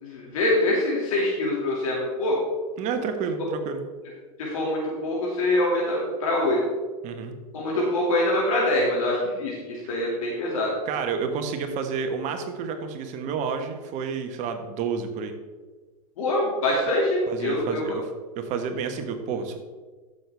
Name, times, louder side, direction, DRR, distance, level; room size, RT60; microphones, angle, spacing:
voice 1, 0.0-2.3 4.4-6.6 7.5-10.7 16.2-17.8, left 1 dB, 65° left, -3 dB, 2.4 m, -24 dB
voice 2, 2.8-3.8 7.0-7.3 10.9-15.3 17.3-19.6, right 6 dB, 40° right, 6 dB, 1.4 m, -30 dB
13.5 x 6.7 x 3.5 m, 1.4 s
hypercardioid pair, 100°, 19 cm